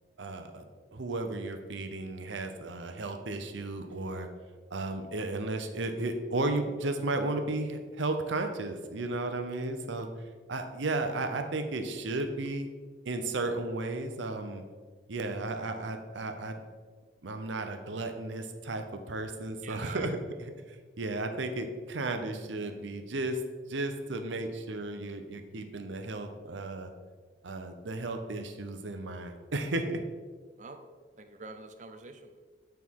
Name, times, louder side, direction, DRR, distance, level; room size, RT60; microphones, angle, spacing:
voice 1, 0.2-0.6 0.9-4.3 4.7-10.1 10.5-12.7 13.0-14.6 15.1-16.6 17.2-20.5 21.0-23.4 23.7-26.9 27.4-30.0, right 2 dB, 85° right, 6 dB, 0.7 m, -34 dB
voice 2, 19.6-20.2 30.6-30.9 31.2-32.4, right 3 dB, 40° right, 7 dB, 0.5 m, -46 dB
8.3 x 4.5 x 3.7 m, 1.5 s
head